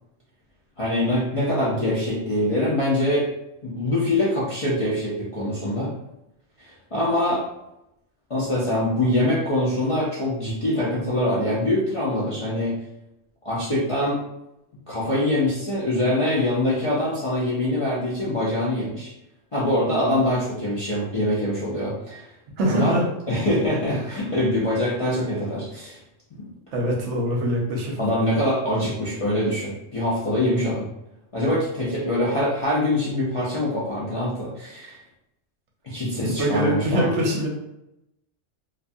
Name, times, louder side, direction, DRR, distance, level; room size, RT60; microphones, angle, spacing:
voice 1, 0.8-3.3 3.6-5.9 6.6-7.5 8.3-12.7 13.4-14.2 14.9-19.1 19.5-22.2 22.7-22.9 23.3-26.0 26.3-26.5 28.0-30.9 31.3-35.0 35.8-37.1, left 1 dB, 60° left, -9 dB, 0.3 m, -24 dB
voice 2, 22.6-23.1 26.7-28.0 36.2-37.5, equal, 70° right, 0 dB, 0.9 m, -23 dB
2.5 x 2.3 x 2.6 m, 0.87 s
omnidirectional pair, 1.4 m